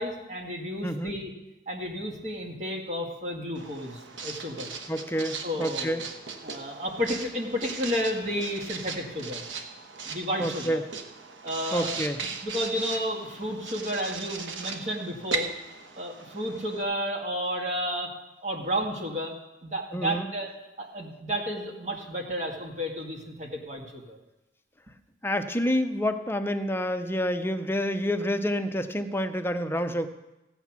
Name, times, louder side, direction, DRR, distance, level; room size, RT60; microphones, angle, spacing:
voice 1, 0.0-1.3 1.7-4.7 5.4-6.0 6.4-9.4 10.1-10.8 11.4-12.0 12.4-15.5 16.0-18.1 18.4-19.3 19.6-20.5 20.8-24.2, equal, 40° right, 0 dB, 1.9 m, -32 dB
voice 2, 0.8-1.1 4.9-6.0 10.4-10.8 11.7-12.2 19.9-20.3 25.2-30.1, equal, 15° left, 7 dB, 0.7 m, -28 dB
Writing, 3.5-16.8, right 4 dB, 90° right, 1.3 m, -38 dB
15.5 x 8.2 x 6.0 m, 0.97 s
head